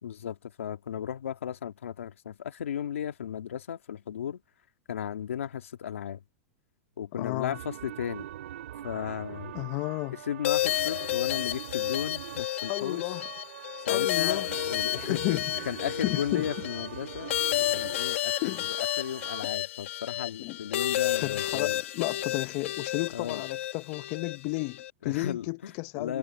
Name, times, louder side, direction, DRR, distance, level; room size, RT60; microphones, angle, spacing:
voice 1, 0.0-4.4 4.9-6.2 7.0-8.3 8.8-9.6 10.3-13.0 13.9-14.4 14.7-15.2 15.7-17.3 17.7-18.3 18.8-21.7 23.1-23.4 25.0-25.7 26.0-26.2, left 9 dB, 90° left, 2.2 m, -35 dB
voice 2, 7.2-7.6 9.5-10.2 12.7-13.3 13.9-14.6 14.9-16.5 17.6-17.7 18.4-18.7 20.4-20.6 21.2-26.2, left 24 dB, 50° left, 0.8 m, -33 dB
sound 1, 7.5-19.4, right 11 dB, 75° right, 5.1 m, -43 dB
sound 2, 10.4-24.9, left 14 dB, 70° left, 1.7 m, -31 dB
hypercardioid pair, 120°, 7 cm